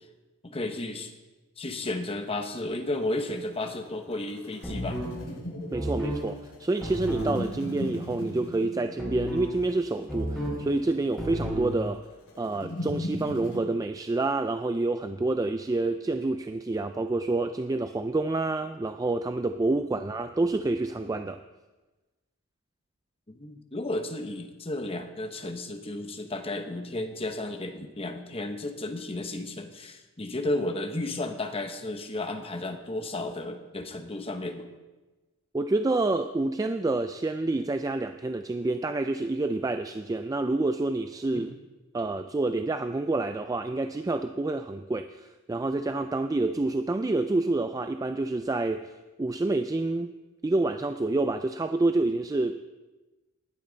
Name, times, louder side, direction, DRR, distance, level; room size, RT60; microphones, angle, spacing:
voice 1, 0.4-1.1 1.6-5.0 23.3-34.7 41.3-41.5, left 2 dB, 25° left, 6 dB, 1.0 m, -33 dB
sound 1, 2.9-13.6, left 1 dB, 75° left, 2.6 m, -39 dB
sound 2, 4.6-5.1 5.7-6.2 6.8-7.3 9.0-9.5 10.1-10.6 11.2-11.7, equal, ahead, 5.0 m, -32 dB
voice 2, 5.7-12.0 12.4-21.4 35.5-41.5 41.9-48.9 49.2-50.1 50.4-52.6, right 2 dB, 15° right, 8 dB, 0.3 m, -28 dB
19.5 x 8.5 x 4.0 m, 1.2 s
head